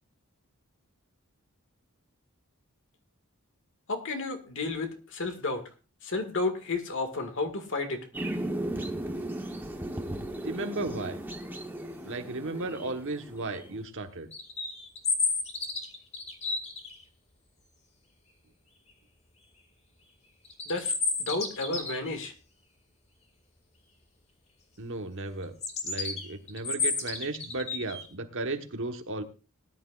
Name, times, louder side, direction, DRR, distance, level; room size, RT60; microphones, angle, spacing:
voice 1, 3.9-5.7 6.0-8.1 20.7-20.9 21.2-22.3, left 3 dB, 60° left, 6 dB, 1.9 m, -32 dB
sound 1, 8.1-13.8, right 1 dB, 10° right, 1.1 m, -36 dB
voice 2, 10.4-11.2 12.0-14.3 24.8-25.5 25.8-29.2, right 2 dB, 60° right, 6 dB, 1.3 m, -35 dB
sound 2, 14.3-17.0 20.4-22.1 25.6-28.1, left 4 dB, 30° left, 2.0 m, -31 dB
19.0 x 10.5 x 2.4 m, 0.32 s
head